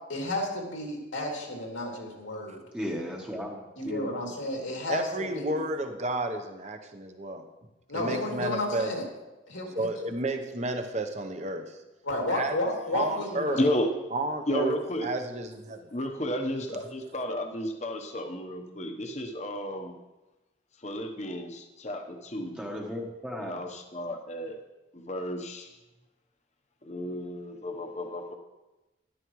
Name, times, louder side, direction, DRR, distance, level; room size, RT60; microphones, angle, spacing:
voice 1, 0.1-2.6 3.8-5.1 5.3-5.6 7.9-9.0 9.5-9.9 12.0-13.6, left 1 dB, 85° left, 0 dB, 2.7 m, -32 dB
voice 2, 2.7-4.1 22.5-23.6, equal, 5° right, -1 dB, 1.0 m, -35 dB
voice 3, 4.9-7.4 7.9-8.9 9.7-11.8 12.3-12.6 12.9-13.6 14.1-14.7 15.0-15.9, right 2 dB, 35° right, 6 dB, 0.8 m, -31 dB
voice 4, 13.5-13.9 14.5-15.1 15.9-20.0 20.8-22.6 23.4-24.6 24.9-25.8 26.8-28.3, left 1 dB, 35° left, 5 dB, 0.9 m, -32 dB
13.0 x 11.5 x 3.1 m, 1.1 s
head